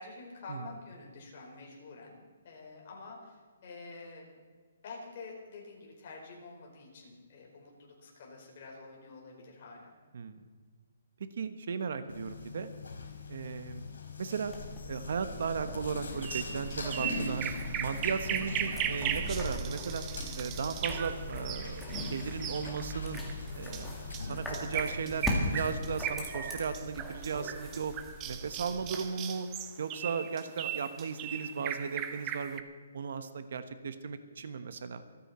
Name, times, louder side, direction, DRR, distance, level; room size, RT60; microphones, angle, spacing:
voice 1, 0.0-2.2 2.4-3.4 3.6-4.4 4.8-9.9, left 3 dB, 35° left, -1 dB, 4.6 m, -48 dB
voice 2, 10.1-10.4 11.2-12.7 13.3-13.9 14.2-14.5 14.9-17.5 17.8-20.0 20.3-23.2 23.5-23.9 24.3-25.3 25.5-27.9 28.3-29.5 29.8-32.6 32.9-35.0, right 5 dB, 55° right, 10 dB, 1.1 m, -36 dB
sound 1, 12.1-26.0, left 4 dB, 85° left, 4.6 m, -43 dB
sound 2, 14.5-29.0, equal, ahead, 1.8 m, -40 dB
sound 3, 16.2-32.6, right 9 dB, 15° right, 0.7 m, -38 dB
26.5 x 9.9 x 4.3 m, 1.5 s
hypercardioid pair, 175°, 0 cm